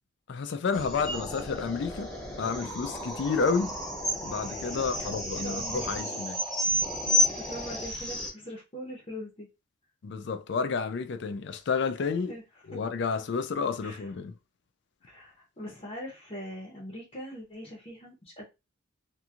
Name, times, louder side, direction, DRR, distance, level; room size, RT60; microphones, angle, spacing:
voice 1, 0.3-2.1 2.4-3.8 4.2-6.4 10.0-12.3 12.7-14.3, left 5 dB, 55° left, 0.4 m, -30 dB
sound 1, 0.7-8.3, equal, 5° left, 0.9 m, -31 dB
voice 2, 4.7-5.9 7.3-9.5 12.3-12.4 13.8-14.1 15.0-18.5, equal, 30° left, 0.7 m, -42 dB
2.9 x 2.6 x 2.3 m
head